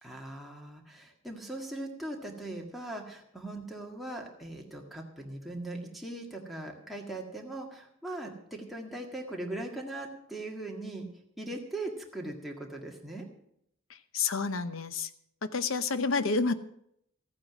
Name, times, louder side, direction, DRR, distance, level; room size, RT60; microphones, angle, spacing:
voice 1, 0.0-11.1 11.4-13.3, right 2 dB, ahead, -1 dB, 1.8 m, -40 dB
voice 2, 14.1-15.1 15.5-16.5, left 4 dB, 75° left, 12 dB, 0.8 m, -29 dB
14.0 x 9.0 x 6.2 m, 0.73 s
head